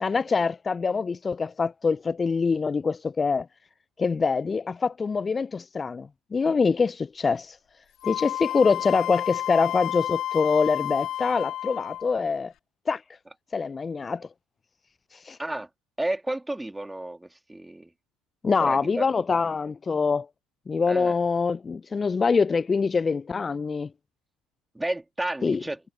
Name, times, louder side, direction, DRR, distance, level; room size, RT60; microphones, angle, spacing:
voice 1, 0.0-3.5 4.0-7.6 8.0-12.5 12.9-13.0 13.5-14.3 15.1-15.4 18.4-20.3 20.7-23.9 25.4-25.6, left 5 dB, 30° left, 0.4 m, -24 dB
Wind instrument woodwind instrument, 8.0-12.2, left 12 dB, 55° left, 2.2 m, -31 dB
voice 2, 16.0-17.9 18.6-19.0 20.9-21.1 24.7-25.8, right 1 dB, 10° right, 2.9 m, -31 dB
hypercardioid pair, 60°, 0 cm